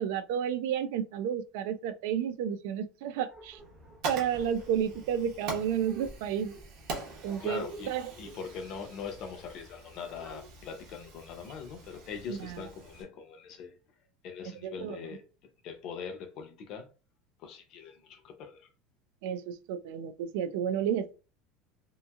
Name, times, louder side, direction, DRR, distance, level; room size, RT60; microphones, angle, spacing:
voice 1, 0.0-3.6 4.0-6.6 7.2-8.1 12.3-12.6 14.4-15.0 19.2-21.2, right 8 dB, 70° right, 0.3 m, -31 dB
sound 1, 3.3-10.5, right 2 dB, 10° right, 0.5 m, -52 dB
Fire, 3.6-13.0, right 3 dB, 50° right, 0.9 m, -44 dB
voice 2, 7.4-7.9 8.2-13.7 14.2-15.2 15.6-16.9 17.4-18.7, left 6 dB, 40° left, 0.5 m, -42 dB
2.8 x 2.6 x 2.3 m
cardioid pair, 180°, 0 cm